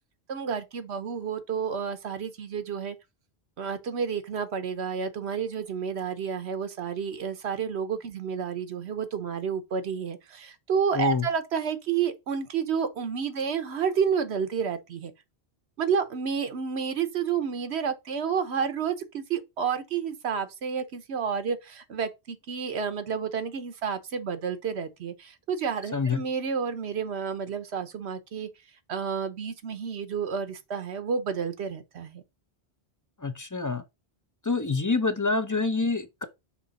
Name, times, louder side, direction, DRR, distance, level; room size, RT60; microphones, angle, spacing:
voice 1, 0.3-3.0 3.6-15.1 15.8-28.5 28.9-32.2, right 6 dB, 85° right, 1.2 m, -30 dB
voice 2, 10.9-11.3 25.9-26.2 33.2-33.8 34.4-36.3, left 4 dB, 25° left, 0.4 m, -26 dB
6.0 x 3.8 x 4.0 m
omnidirectional pair, 1.1 m